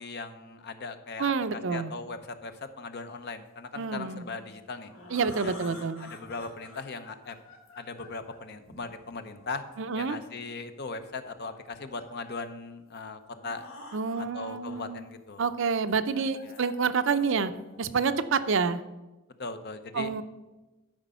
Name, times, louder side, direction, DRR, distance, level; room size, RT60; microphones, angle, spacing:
voice 1, 0.0-4.9 5.4-7.4 7.8-9.6 10.0-13.7 14.3-15.4 16.4-16.6 19.4-20.1, left 3 dB, 50° left, 9 dB, 0.8 m, -39 dB
voice 2, 1.2-1.9 3.8-4.3 5.1-6.1 9.8-10.2 13.9-15.1 15.4-17.5 17.8-18.8 19.9-20.2, right 5 dB, 60° right, 11 dB, 0.5 m, -28 dB
sound 1, 4.4-10.3 11.3-12.4 12.9-13.0 13.2-14.8 15.2-18.0, left 2 dB, 70° left, 2.0 m, -50 dB
12.5 x 5.1 x 5.6 m, 1.1 s
head